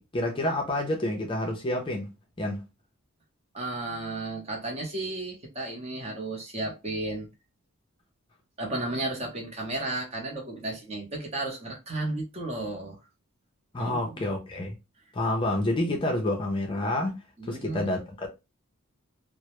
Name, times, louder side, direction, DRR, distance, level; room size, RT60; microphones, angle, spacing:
voice 1, 0.0-2.1 2.4-2.6 13.7-14.7 15.1-17.2 17.5-18.3, left 1 dB, 25° left, 0.4 m, -28 dB
voice 2, 3.5-7.3 8.6-13.0 13.8-14.3 17.4-17.9, right 2 dB, 30° right, 0.7 m, -33 dB
2.1 x 2.0 x 2.9 m
head